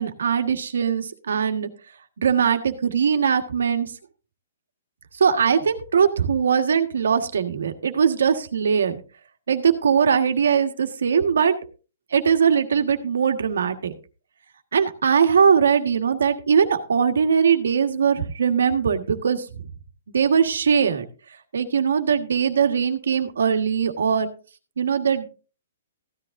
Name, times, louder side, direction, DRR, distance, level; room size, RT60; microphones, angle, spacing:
voice 1, 0.0-1.7 2.2-3.9 5.2-9.0 9.5-11.5 12.1-13.9 14.7-19.6 20.1-21.0 21.5-24.3 24.8-25.3, right 7 dB, 80° right, 7 dB, 1.5 m, -21 dB
15.0 x 10.0 x 2.6 m, 0.35 s
hypercardioid pair, 150°, 0 cm